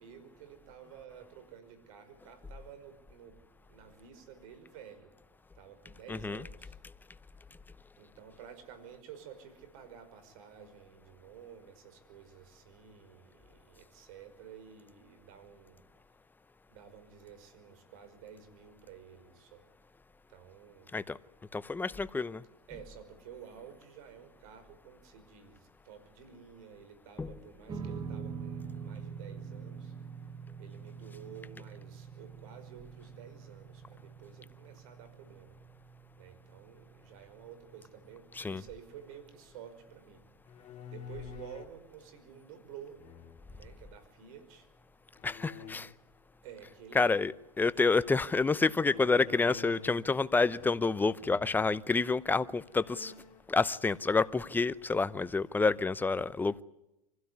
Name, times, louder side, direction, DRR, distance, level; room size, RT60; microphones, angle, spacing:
voice 1, 0.0-3.4 3.7-5.1 5.5-6.8 8.0-15.8 16.7-19.6 20.3-20.9 22.7-29.9 30.6-35.6 36.2-40.2 40.9-43.0 43.5-44.7 46.4-47.2 47.7-48.0, right 8 dB, 65° right, 5.6 m, -51 dB
voice 2, 6.1-6.4 20.9-21.2 21.5-22.4 27.2-27.3 38.4-38.6 45.2-45.9 46.9-47.3 47.6-53.1 53.5-56.6, left 4 dB, 10° left, 0.8 m, -28 dB
sound 1, 27.7-40.2, right 6 dB, 20° right, 2.2 m, -46 dB
sound 2, 40.4-41.8 43.0-43.7 45.2-45.8 48.7-50.1 50.4-50.9 51.2-51.6 52.2-52.3 52.7-53.4, left 7 dB, 35° left, 3.1 m, -48 dB
25.0 x 16.0 x 9.6 m
hypercardioid pair, 115°, 19 cm